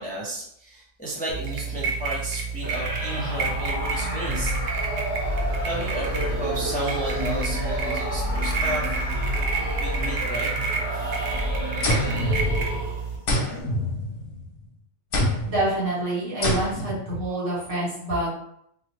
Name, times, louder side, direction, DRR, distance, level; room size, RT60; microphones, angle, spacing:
voice 1, 0.0-4.6 5.6-8.9 9.8-11.3, right 1 dB, 10° left, -7 dB, 0.6 m, -33 dB
sound 1, 1.3-13.2, right 5 dB, 80° right, 0.9 m, -30 dB
sound 2, 2.6-13.2, equal, 20° right, 1.3 m, -29 dB
sound 3, 11.8-12.9 13.3-14.5 15.1-15.7 16.4-17.0, left 1 dB, 55° left, 0.7 m, -26 dB
voice 2, 15.4-18.3, right 1 dB, 65° right, -8 dB, 2.1 m, -27 dB
3.1 x 2.3 x 3.0 m, 0.72 s
omnidirectional pair, 1.3 m